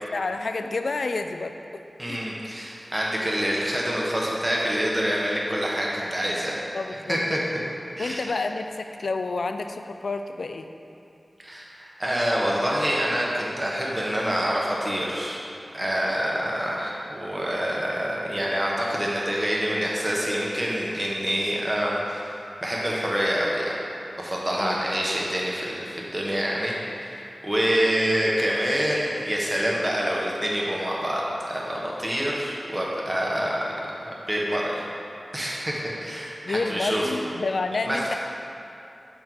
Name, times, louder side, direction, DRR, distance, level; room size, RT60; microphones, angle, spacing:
voice 1, 0.1-2.2 6.7-7.2 8.0-10.7 24.6-24.8 36.4-38.1, left 3 dB, 80° left, 7 dB, 0.3 m, -29 dB
voice 2, 2.0-6.6 7.1-7.4 8.0-8.2 11.4-15.4 15.7-23.8 24.2-33.7 34.0-34.8 35.3-37.1 37.8-38.2, equal, 20° right, -4 dB, 1.1 m, -26 dB
6.5 x 3.9 x 4.5 m, 2.8 s
wide cardioid pair, 65°, 0 cm